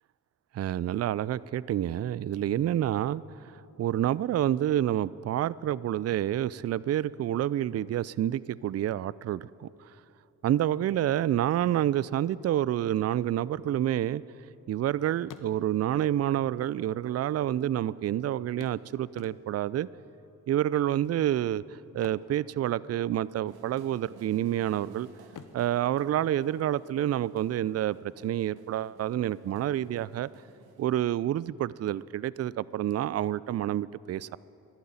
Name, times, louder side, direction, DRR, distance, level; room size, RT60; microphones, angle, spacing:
voice 1, 0.5-9.7 10.4-14.2 14.7-19.9 20.5-21.6 21.9-25.1 25.5-30.3 30.8-34.4, right 12 dB, 40° right, 20 dB, 0.4 m, -28 dB
sound 1, 14.6-14.9 15.2-16.0 16.9-17.0 17.3-17.4 18.6-19.8 21.8-23.2 23.4-23.7 24.2-24.8 25.3-27.0 29.0-29.1 29.5-29.6, left 7 dB, 50° left, 0.9 m, -52 dB
sound 2, 23.5-31.2, right 5 dB, 65° right, 1.3 m, -57 dB
11.5 x 11.5 x 8.8 m, 2.8 s
hypercardioid pair, 40°, 40 cm